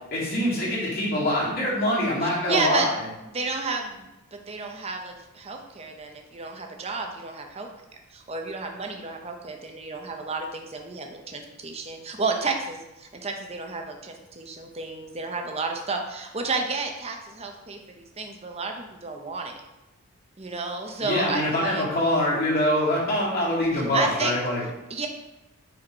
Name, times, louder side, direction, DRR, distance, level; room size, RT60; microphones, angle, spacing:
voice 1, 0.1-3.1 21.0-24.6, left 1 dB, 45° left, -7 dB, 2.2 m, -24 dB
voice 2, 2.5-2.9 3.3-4.0 4.3-7.7 8.1-19.6 20.4-21.8 23.9-24.4 24.9-25.1, right 3 dB, 25° right, 3 dB, 0.7 m, -31 dB
5.0 x 4.6 x 4.6 m, 0.95 s
head